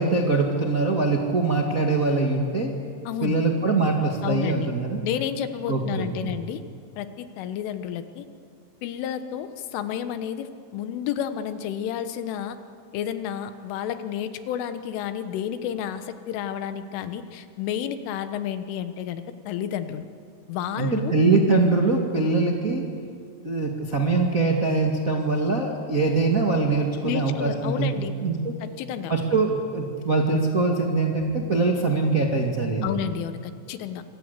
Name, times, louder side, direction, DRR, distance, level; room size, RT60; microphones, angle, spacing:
voice 1, 0.0-2.7 3.2-5.0 5.7-6.3 20.8-22.8 23.4-28.5 29.1-32.9, right 3 dB, 60° right, 0 dB, 0.8 m, -23 dB
voice 2, 3.1-3.4 4.2-4.7 5.0-6.6 7.0-8.3 8.8-12.6 12.9-20.1 20.5-21.1 27.0-28.1 28.6-29.1 32.8-34.0, left 9 dB, 85° left, 10 dB, 3.7 m, -31 dB
26.5 x 26.0 x 8.2 m, 2.4 s
omnidirectional pair, 5.6 m